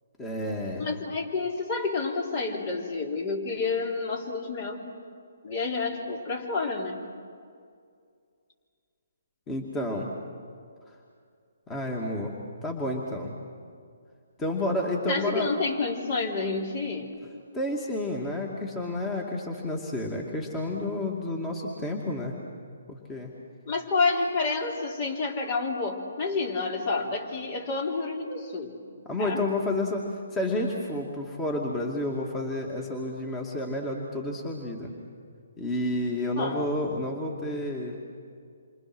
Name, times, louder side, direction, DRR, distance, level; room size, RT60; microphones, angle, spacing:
voice 1, 0.2-0.9 9.5-10.1 10.9-11.0 11.7-12.3 12.6-13.4 14.4-15.5 17.5-22.3 22.9-23.3 29.1-34.9 35.6-38.0, left 1 dB, 15° left, -1 dB, 2.5 m, -30 dB
voice 2, 0.8-4.9 5.4-7.0 15.1-17.3 23.7-28.8 29.2-29.4 36.4-36.7, left 4 dB, 40° left, 1 dB, 3.6 m, -29 dB
28.0 x 25.0 x 6.3 m, 2.2 s
hypercardioid pair, 145°, 0 cm